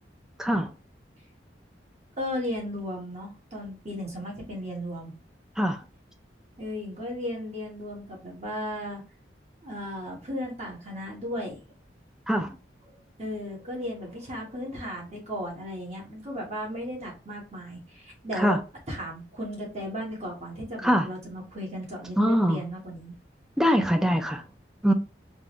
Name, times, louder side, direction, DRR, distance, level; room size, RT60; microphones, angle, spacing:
voice 1, 0.4-0.7 5.6-5.8 12.3-12.6 18.3-18.6 20.8-21.1 22.2-22.6 23.6-24.4 24.8-24.9, equal, 5° right, 0.4 m, -23 dB
voice 2, 2.2-5.1 6.6-9.0 9.6-11.6 13.2-18.6 18.9-23.2, equal, 35° right, 1.3 m, -35 dB
3.6 x 2.5 x 3.0 m
head